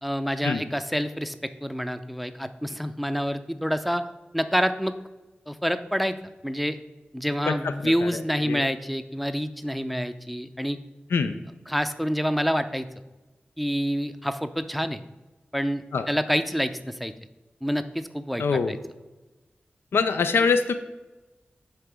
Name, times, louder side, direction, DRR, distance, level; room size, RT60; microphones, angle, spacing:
voice 1, 0.0-4.0 4.3-5.0 5.5-6.2 6.4-6.8 7.1-10.8 11.7-12.9 13.6-15.0 15.5-17.1 17.6-18.8, equal, ahead, 10 dB, 0.5 m, -27 dB
voice 2, 7.5-8.6 11.1-11.4 15.9-16.1 18.4-18.8 19.9-20.7, left 5 dB, 85° left, 10 dB, 0.4 m, -25 dB
6.6 x 4.3 x 4.8 m, 1.1 s
cardioid pair, 40°, 4 cm